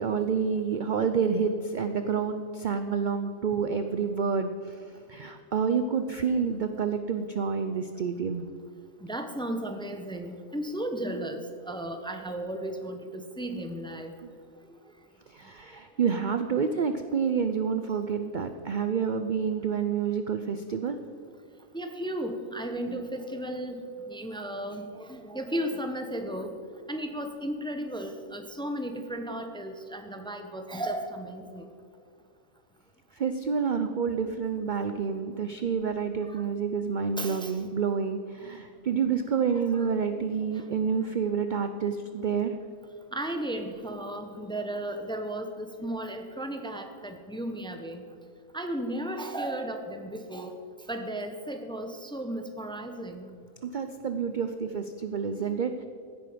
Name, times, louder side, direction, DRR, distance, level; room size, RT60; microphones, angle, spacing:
voice 1, 0.0-8.5 14.2-14.3 15.3-21.0 33.1-42.5 53.6-55.8, right 6 dB, 55° right, 8 dB, 0.5 m, -28 dB
voice 2, 9.0-14.1 14.7-14.8 21.7-26.6 26.9-31.7 36.2-36.4 37.0-37.6 39.5-39.9 40.2-40.7 41.2-41.4 43.1-48.0 48.5-50.6 50.9-53.3, right 1 dB, 5° left, 6 dB, 0.7 m, -35 dB
16.0 x 9.2 x 5.1 m, 2.2 s
omnidirectional pair, 1.4 m